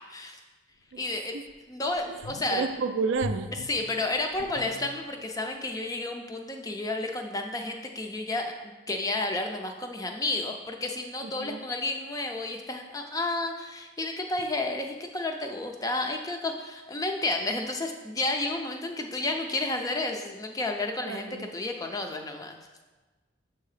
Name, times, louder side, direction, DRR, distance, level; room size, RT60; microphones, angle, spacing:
voice 1, 0.1-0.4 1.0-1.3 1.7-2.6 3.7-22.6, left 2 dB, 15° left, 3 dB, 0.4 m, -31 dB
sound 1, 0.9-1.0 1.5-1.6 1.9-2.7 3.2-5.4 5.7-5.8, left 2 dB, 70° left, 0.6 m, -40 dB
voice 2, 2.5-3.5 11.2-11.6 21.0-21.5, right 4 dB, 70° right, 10 dB, 0.3 m, -31 dB
7.2 x 2.8 x 4.8 m, 1.3 s
head